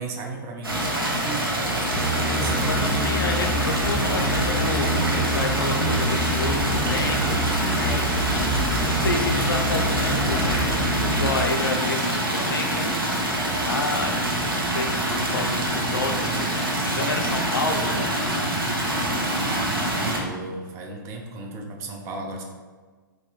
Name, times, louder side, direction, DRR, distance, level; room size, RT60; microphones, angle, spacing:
voice 1, 0.0-2.9 14.8-15.5 18.8-22.4, right 3 dB, 25° right, 1 dB, 0.4 m, -35 dB
sound 1, 0.6-20.2, right 1 dB, 90° right, 0.6 m, -25 dB
sound 2, 1.9-11.3, right 1 dB, 15° left, 0.6 m, -27 dB
voice 2, 2.6-7.2 7.7-8.1 8.8-10.9 11.1-14.2 14.5-18.3, left 3 dB, 80° left, 4 dB, 0.4 m, -30 dB
3.0 x 2.2 x 2.3 m, 1.4 s
figure-of-eight pair, 110°, 12 cm